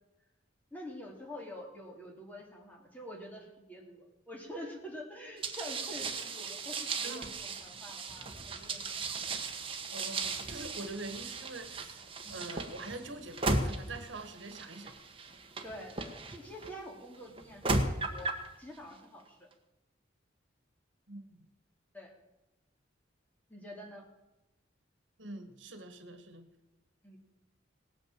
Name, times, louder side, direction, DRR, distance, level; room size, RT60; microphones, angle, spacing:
voice 1, 0.7-9.1 12.2-12.4 15.6-18.3 18.6-19.4 21.9-22.1 23.5-24.0 27.0-27.2, equal, 10° left, 0 dB, 2.7 m, -47 dB
sound 1, 5.4-16.7 17.4-18.5, right 3 dB, 30° right, 1.3 m, -36 dB
voice 2, 7.0-7.3 9.9-12.0 12.3-14.9 21.1-21.5 25.2-26.5, right 2 dB, 75° right, 9 dB, 1.5 m, -44 dB
17.5 x 9.0 x 7.4 m, 1.0 s
head